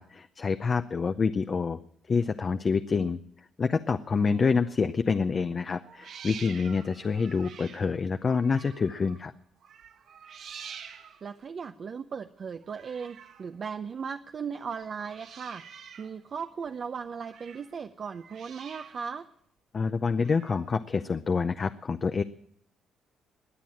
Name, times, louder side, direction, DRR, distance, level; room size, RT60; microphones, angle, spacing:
voice 1, 0.0-1.8 2.1-3.2 3.6-9.3 19.7-22.2, left 5 dB, 35° left, 9 dB, 0.6 m, -27 dB
sound 1, 4.0-4.8 5.8-9.3 9.6-11.4 12.6-13.6 14.6-16.2 16.5-17.8 18.1-19.2 20.2-20.8, right 7 dB, 65° right, 1.5 m, -48 dB
voice 2, 11.2-15.6 16.0-19.3, right 6 dB, 45° right, 8 dB, 0.6 m, -37 dB
21.0 x 7.6 x 8.7 m, 0.70 s
cardioid pair, 105°, 0 cm